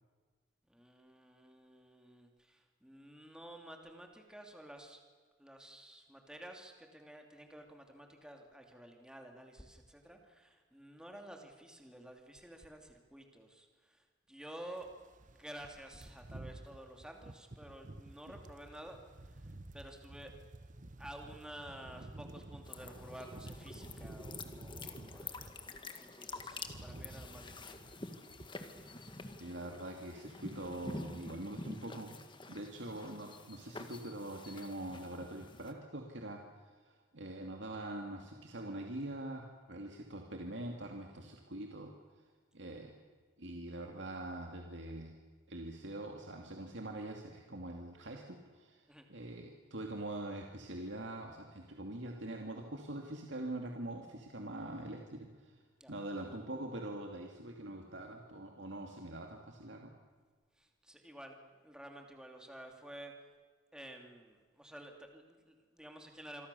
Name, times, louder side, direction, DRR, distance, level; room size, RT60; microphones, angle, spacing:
voice 1, 0.7-5.0 5.4-14.9 15.3-19.0 19.3-20.3 21.0-25.3 25.7-27.9 48.9-49.0 55.8-55.9 60.6-61.4 61.6-63.1 63.7-66.5, right 1 dB, 5° right, 3 dB, 2.9 m, -52 dB
sound 1, 14.8-25.7 26.1-29.5 29.7-30.0 30.3-31.1 31.4-31.6, right 1 dB, 40° right, 1.1 m, -52 dB
sound 2, 22.6-35.7, left 3 dB, 25° left, 1.8 m, -48 dB
voice 2, 29.4-32.2 32.5-41.9 42.5-42.9 43.4-45.2 45.5-48.8 49.1-55.5 55.9-59.9, right 1 dB, 65° right, 2 dB, 2.5 m, -44 dB
27.0 x 23.5 x 7.0 m, 1.5 s
head